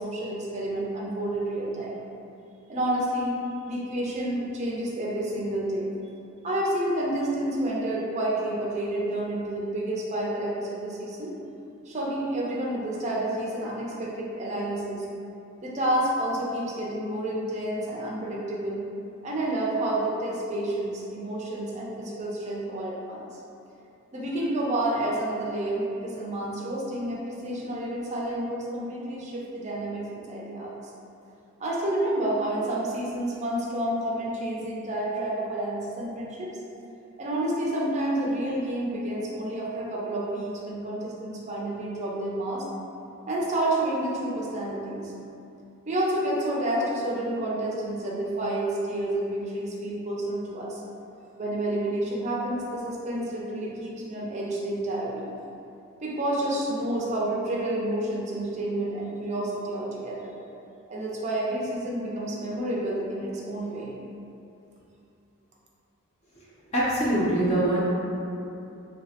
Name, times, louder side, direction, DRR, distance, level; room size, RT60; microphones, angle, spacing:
voice 1, 0.0-2.0 2.7-3.4 3.7-5.9 6.4-11.3 11.9-15.0 15.6-18.8 19.2-23.3 24.1-30.7 31.6-36.5 37.2-42.6 43.3-45.1 45.9-50.8 51.4-55.3 56.0-60.3 60.9-63.9, right 1 dB, 35° right, -5 dB, 0.4 m, -29 dB
voice 2, 66.7-67.8, right 1 dB, 30° left, -9 dB, 0.5 m, -23 dB
3.2 x 2.0 x 2.7 m, 2.7 s
head